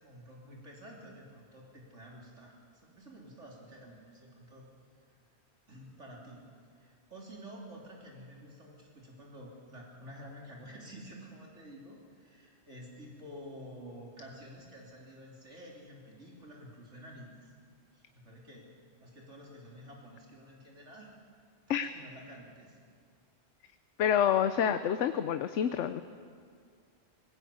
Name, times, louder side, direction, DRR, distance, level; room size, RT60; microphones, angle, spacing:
voice 1, 0.0-2.5 2.8-4.7 5.7-6.5 6.7-17.5 17.9-18.7 19.0-21.1 21.7-22.8, equal, 85° right, -2 dB, 3.9 m, -50 dB
voice 2, 24.0-26.0, left 9 dB, 80° left, 10 dB, 1.0 m, -28 dB
19.5 x 17.5 x 8.6 m, 2.1 s
omnidirectional pair, 1.2 m